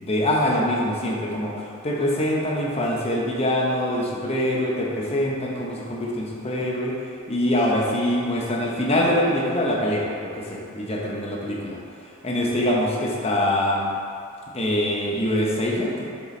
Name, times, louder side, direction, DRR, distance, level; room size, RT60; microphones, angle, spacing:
voice 1, 0.0-13.9 14.5-16.1, left 1 dB, 30° left, -2 dB, 0.8 m, -24 dB
6.7 x 5.5 x 3.2 m, 2.4 s
head